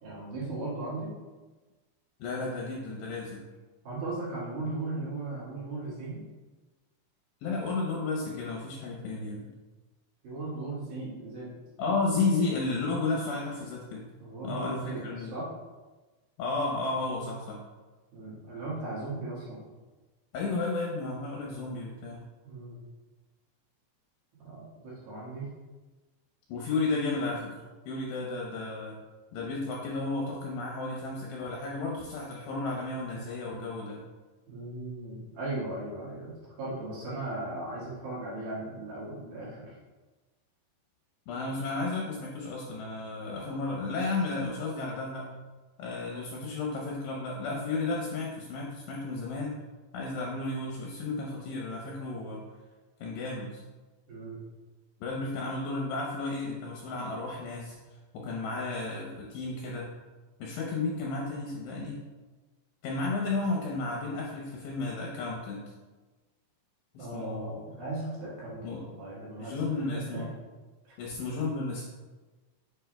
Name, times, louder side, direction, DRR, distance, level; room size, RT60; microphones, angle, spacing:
voice 1, 0.0-1.1 3.8-6.2 10.2-11.5 14.2-15.5 18.1-19.6 22.4-22.8 24.4-25.5 34.5-39.8 54.1-54.4 67.0-69.5 69.9-70.2 70.8-70.9, right 2 dB, 60° right, -8 dB, 3.0 m, -37 dB
voice 2, 2.2-3.4 7.4-9.5 11.8-14.1 14.4-15.4 16.4-17.6 20.3-22.3 26.5-29.0 29.3-34.0 41.3-45.3 45.8-49.6 49.9-52.4 53.0-53.6 55.0-59.9 60.4-62.0 62.8-65.6 66.9-67.6 68.6-68.8 69.4-70.3 71.0-71.8, left 3 dB, 75° left, -2 dB, 2.8 m, -33 dB
8.1 x 7.1 x 2.2 m, 1.2 s
omnidirectional pair, 5.5 m